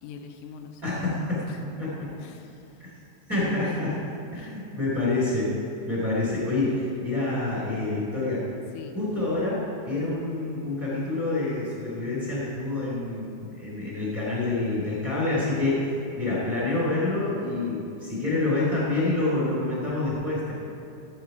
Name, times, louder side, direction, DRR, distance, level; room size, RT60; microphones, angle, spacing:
voice 1, 0.0-1.6 2.2-2.9 3.6-3.8 4.3-4.7 8.7-9.0, left 6 dB, 85° left, 4 dB, 2.4 m, -45 dB
voice 2, 0.8-2.1 2.8-2.9 3.3-4.0 4.3-5.5 5.9-8.4 8.9-15.8 16.2-20.5, left 2 dB, 20° right, -7 dB, 2.6 m, -27 dB
15.5 x 7.4 x 4.8 m, 2.8 s
omnidirectional pair, 5.6 m